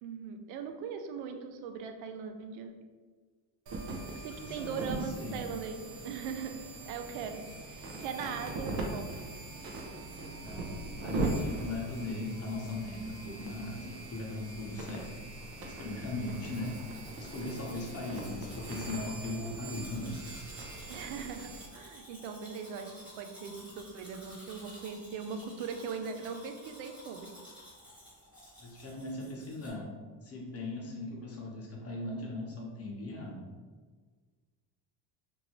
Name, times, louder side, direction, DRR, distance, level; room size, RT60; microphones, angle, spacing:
voice 1, 0.0-2.7 4.1-9.0 20.9-27.4, right 6 dB, 90° right, 6 dB, 0.5 m, -40 dB
sound 1, 3.7-21.7, right 2 dB, 50° right, 0.7 m, -40 dB
voice 2, 4.3-5.4 8.6-9.0 10.4-15.1 15.6-16.8 17.2-20.2 28.6-29.9 30.2-33.5, left 2 dB, 30° left, -2 dB, 0.9 m, -39 dB
Domestic sounds home sounds, 16.1-29.7, equal, 5° right, 1.3 m, -53 dB
2.7 x 2.6 x 3.0 m, 1.5 s
cardioid pair, 100°, 45 cm